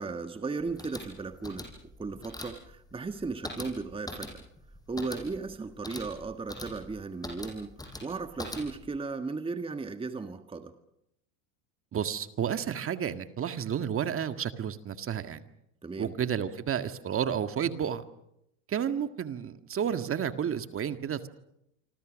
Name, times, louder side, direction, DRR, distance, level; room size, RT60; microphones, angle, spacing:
voice 1, 0.0-1.7 2.0-4.4 4.9-7.7 8.0-10.7 15.8-16.1, right 4 dB, 15° right, 8 dB, 1.6 m, -36 dB
sound 1, 0.6-9.0, left 1 dB, 10° left, 7.1 m, -43 dB
voice 2, 11.9-15.4 16.0-18.0 18.7-21.3, right 8 dB, 30° right, 9 dB, 1.8 m, -31 dB
27.0 x 25.5 x 6.4 m, 0.79 s
hypercardioid pair, 100°, 42 cm